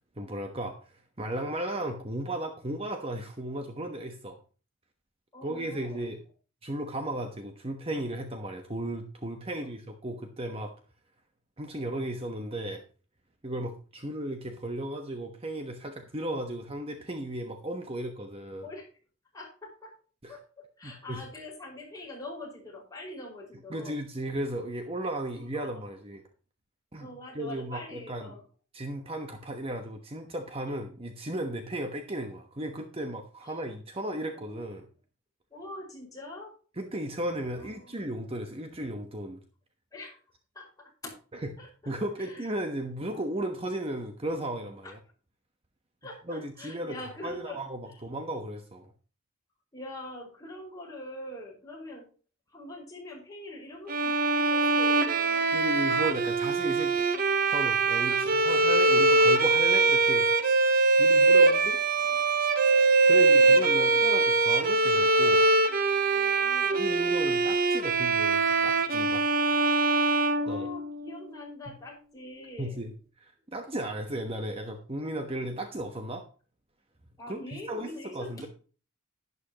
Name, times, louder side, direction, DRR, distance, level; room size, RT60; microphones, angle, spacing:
voice 1, 0.2-0.8 1.2-4.4 5.4-6.2 6.6-10.7 11.6-12.8 13.4-18.7 20.2-20.3 20.8-21.2 23.7-26.2 26.9-27.1 27.3-28.3 28.7-34.9 36.8-39.4 41.4-41.5 41.9-45.0 46.3-48.9 55.5-57.0 57.5-60.3 61.0-61.7 63.1-65.4 66.7-69.2 70.5-70.7 72.6-72.9 73.2-76.2 77.3-78.5, right 1 dB, 30° right, 5 dB, 1.1 m, -35 dB
voice 2, 5.3-6.1 9.5-9.8 18.6-18.9 19.3-19.9 20.3-24.0 25.2-25.8 27.0-28.4 33.4-33.7 34.3-34.6 35.5-36.5 37.6-38.4 39.9-40.2 40.5-41.2 41.6-42.5 44.8-44.9 46.0-47.6 47.9-48.0 49.7-52.1 52.5-55.5 58.1-58.2 61.3-62.3 63.1-64.6 66.0-66.8 70.4-72.8 77.2-78.5, left 1 dB, 15° left, -2 dB, 5.2 m, -44 dB
Bowed string instrument, 53.9-71.1, right 3 dB, 45° right, 0.9 m, -23 dB
11.5 x 11.0 x 3.0 m, 0.37 s
head